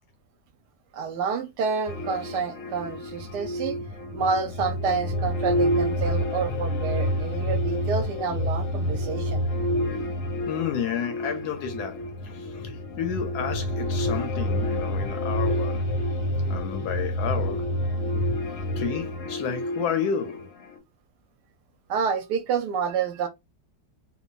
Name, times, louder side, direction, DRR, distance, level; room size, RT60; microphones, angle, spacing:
voice 1, 0.9-3.8 4.1-9.5 21.9-23.3, right 5 dB, 75° right, 1.1 m, -28 dB
sound 1, 1.9-20.8, equal, 90° left, 1.5 m, -28 dB
voice 2, 10.5-15.9 16.5-17.7 18.8-20.5, left 7 dB, 70° left, 1.0 m, -31 dB
3.0 x 2.2 x 2.2 m
omnidirectional pair, 1.9 m